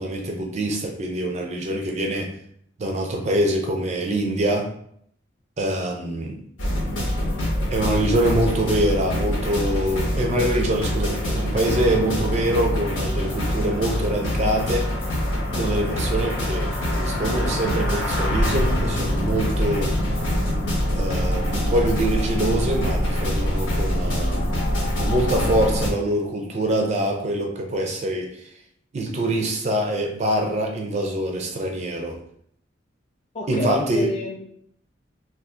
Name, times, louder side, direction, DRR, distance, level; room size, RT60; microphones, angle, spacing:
voice 1, 0.0-2.4 2.8-4.7 5.6-6.4 7.7-15.0 15.5-20.0 21.0-24.6 25.0-28.5 28.9-32.2 33.5-34.1, right 1 dB, 35° right, 2 dB, 0.4 m, -24 dB
sound 1, 6.6-25.9, equal, 85° left, 1.0 m, -24 dB
voice 2, 33.3-34.4, left 1 dB, 35° left, 1 dB, 0.4 m, -28 dB
2.4 x 2.4 x 3.6 m, 0.67 s
head